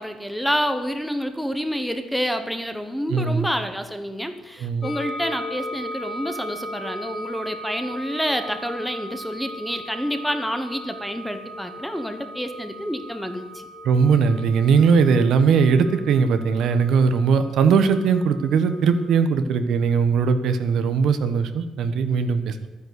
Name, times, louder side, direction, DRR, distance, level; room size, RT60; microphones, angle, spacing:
voice 1, 0.0-13.7, equal, ahead, 8 dB, 1.1 m, -28 dB
voice 2, 3.1-3.5 4.6-4.9 13.8-22.7, right 5 dB, 70° right, 10 dB, 1.3 m, -19 dB
sound 1, 4.8-19.1, left 1 dB, 40° left, 1.8 m, -37 dB
12.5 x 10.0 x 8.2 m, 1.2 s
cardioid pair, 160°, 0 cm